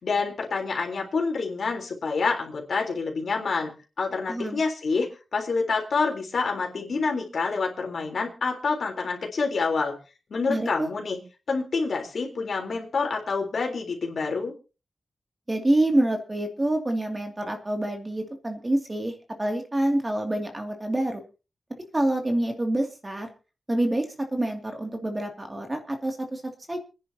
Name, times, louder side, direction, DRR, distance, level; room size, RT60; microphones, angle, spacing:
voice 1, 0.0-3.7 4.0-9.9 10.3-11.2 11.5-14.5, left 4 dB, 70° left, 2 dB, 3.8 m, -27 dB
voice 2, 4.3-4.6 10.5-10.9 15.5-21.2 21.9-23.3 23.7-26.8, right 1 dB, 20° right, 4 dB, 2.5 m, -27 dB
28.5 x 10.5 x 2.9 m, 0.33 s
wide cardioid pair, 105°, 0 cm